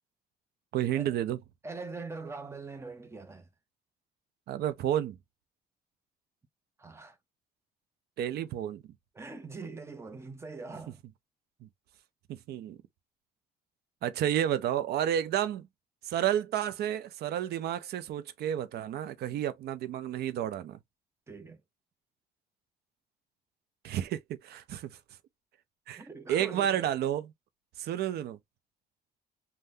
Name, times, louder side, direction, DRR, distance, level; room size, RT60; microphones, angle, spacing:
voice 1, 0.7-1.4 4.5-5.2 8.2-8.8 11.6-11.7 12.3-12.8 14.0-15.7 16.0-20.8 23.8-25.0 25.9-26.0 26.3-27.3 27.8-28.4, right 11 dB, 75° right, 0.5 m, -31 dB
voice 2, 1.6-3.5 6.8-7.2 9.1-11.0 21.3-21.6 26.0-26.9, right 3 dB, 15° right, 0.7 m, -42 dB
3.4 x 2.2 x 2.5 m
cardioid pair, 140°, 17 cm